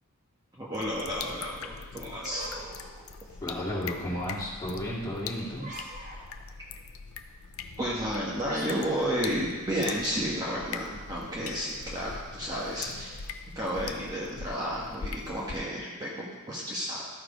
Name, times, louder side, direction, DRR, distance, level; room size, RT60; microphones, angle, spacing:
voice 1, 0.6-2.5 7.8-13.3 13.5-17.1, equal, 20° right, -6 dB, 1.3 m, -32 dB
sound 1, 0.7-15.6, left 5 dB, 75° left, 0.6 m, -42 dB
sound 2, 2.2-3.7 5.5-6.6 8.4-10.3, right 1 dB, 35° right, 1.4 m, -44 dB
voice 2, 3.4-5.7, equal, 15° left, -7 dB, 2.3 m, -33 dB
13.0 x 4.6 x 5.0 m, 1.3 s
head